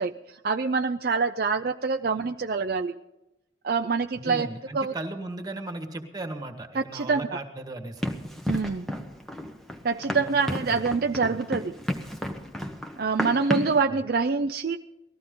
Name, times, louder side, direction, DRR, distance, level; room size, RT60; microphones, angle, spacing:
voice 1, 0.0-3.0 3.6-4.5 4.7-4.9 6.7-7.2 8.5-8.9 9.8-11.7 13.0-14.8, right 4 dB, 50° right, 7 dB, 0.5 m, -26 dB
voice 2, 4.2-8.1 10.0-10.8 11.3-11.4 13.9-14.0, right 2 dB, 20° right, 5 dB, 1.7 m, -37 dB
Run, 8.0-13.8, left 1 dB, ahead, 1.0 m, -32 dB
19.5 x 14.5 x 3.8 m, 0.95 s
head